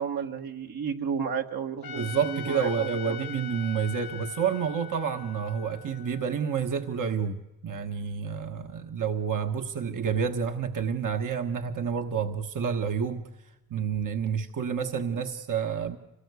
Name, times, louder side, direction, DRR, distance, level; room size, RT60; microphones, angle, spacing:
voice 1, 0.0-3.2 15.1-15.2, right 7 dB, 75° right, 3 dB, 1.8 m, -32 dB
Trumpet, 1.8-7.0, left 10 dB, 75° left, 0.9 m, -42 dB
voice 2, 1.8-13.2 13.7-16.0, right 6 dB, 60° right, 5 dB, 1.4 m, -29 dB
25.5 x 18.5 x 8.2 m, 1.0 s
supercardioid pair, 50°, 36 cm